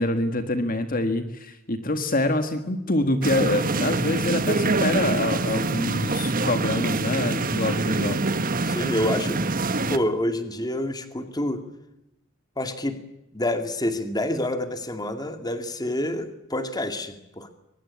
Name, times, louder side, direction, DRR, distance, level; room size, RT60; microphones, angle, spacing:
voice 1, 0.0-8.2, left 2 dB, 40° left, 8 dB, 1.8 m, -26 dB
sound 1, 3.2-10.0, right 3 dB, 40° right, 1.4 m, -25 dB
voice 2, 8.6-11.6 12.6-13.0 13.3-17.5, left 1 dB, 20° left, 8 dB, 2.3 m, -28 dB
23.5 x 22.0 x 8.6 m, 0.90 s
head